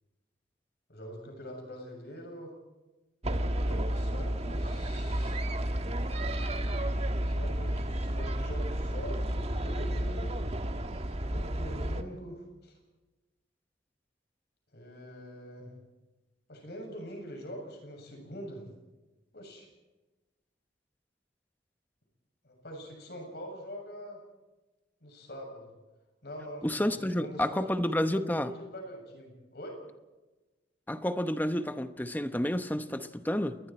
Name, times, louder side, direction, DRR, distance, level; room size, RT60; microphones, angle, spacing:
voice 1, 0.9-2.5 3.5-5.4 7.1-10.6 11.1-12.7 14.7-15.7 16.5-18.6 19.3-19.7 22.4-24.2 25.0-25.7 26.2-29.8, equal, 65° left, 2 dB, 7.3 m, -44 dB
sound 1, 3.2-12.0, right 1 dB, 35° right, 1.4 m, -31 dB
voice 2, 26.6-28.5 30.9-33.6, left 1 dB, 10° left, 9 dB, 1.0 m, -30 dB
29.0 x 21.5 x 4.4 m, 1.1 s
head